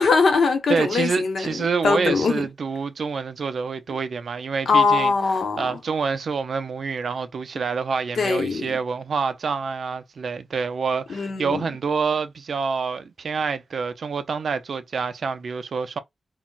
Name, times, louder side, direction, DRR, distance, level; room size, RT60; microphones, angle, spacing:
voice 1, 0.0-1.6 1.8-2.5 4.7-5.8 8.2-8.8 11.1-11.6, left 4 dB, 65° left, 0.7 m, -21 dB
voice 2, 0.7-5.1 5.6-16.0, right 5 dB, 60° right, 0.3 m, -27 dB
3.8 x 2.0 x 2.2 m
wide cardioid pair, 155°, 0 cm